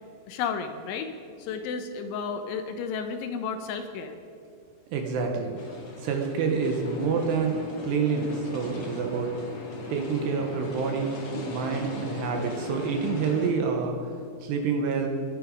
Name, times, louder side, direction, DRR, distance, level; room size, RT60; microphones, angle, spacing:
voice 1, 0.3-1.1 1.4-4.2, left 6 dB, 80° left, 7 dB, 3.1 m, -32 dB
voice 2, 4.9-5.6 6.0-9.3 9.9-11.2 11.5-14.1 14.4-15.1, right 5 dB, 70° right, 3 dB, 2.8 m, -27 dB
sound 1, 5.5-13.5, left 2 dB, 50° left, 1.7 m, -38 dB
21.5 x 9.9 x 5.3 m, 2.3 s
omnidirectional pair, 5.7 m